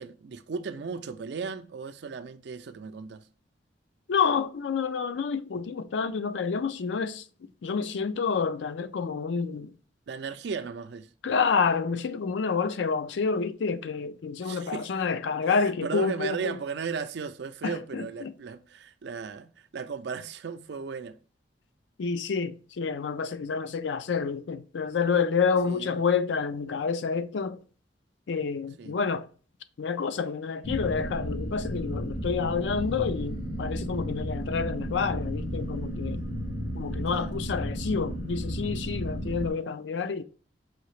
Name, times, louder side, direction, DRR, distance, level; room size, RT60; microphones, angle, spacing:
voice 1, 0.0-3.2 10.1-11.1 14.4-14.9 15.6-21.2 25.6-26.0 28.8-29.0 37.1-37.3, right 5 dB, 65° right, 0.4 m, -36 dB
voice 2, 4.1-7.2 7.6-9.7 11.2-16.6 17.6-18.3 22.0-27.6 28.3-29.3 29.8-36.2 36.7-40.2, left 5 dB, 75° left, 0.4 m, -28 dB
sound 1, 30.6-39.5, equal, 50° left, 0.8 m, -33 dB
4.9 x 2.8 x 3.1 m
head